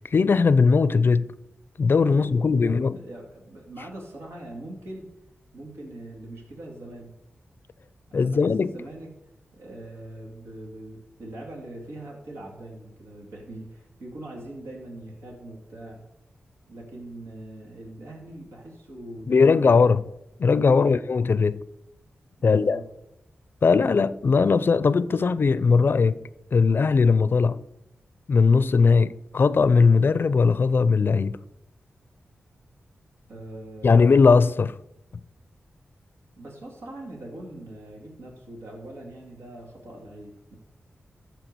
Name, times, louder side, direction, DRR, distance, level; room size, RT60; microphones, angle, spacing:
voice 1, 0.1-1.3 1.8-3.0 8.1-8.8 19.3-20.1 20.4-21.6 22.4-22.8 23.6-26.2 26.5-27.6 28.3-31.4 33.8-34.7, left 4 dB, 55° left, 0.5 m, -19 dB
voice 2, 2.1-5.1 5.5-7.1 8.1-9.1 9.5-16.0 16.7-19.6 20.6-21.0 22.4-22.8 33.3-34.0 36.4-40.6, right 1 dB, 85° right, 2.5 m, -42 dB
13.5 x 4.5 x 6.8 m
cardioid pair, 60°, 4 cm